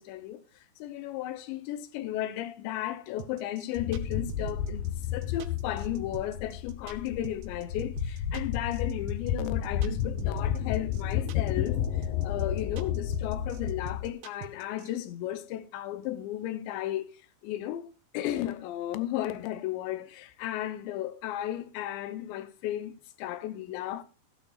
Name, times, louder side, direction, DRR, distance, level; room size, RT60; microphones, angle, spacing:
voice 1, 0.0-24.0, left 13 dB, 85° left, 3.2 m, -35 dB
sound 1, 3.2-14.9, right 11 dB, 90° right, 3.3 m, -45 dB
sound 2, 3.8-14.1, left 9 dB, 70° left, 2.2 m, -32 dB
14.5 x 12.0 x 2.4 m
omnidirectional pair, 5.0 m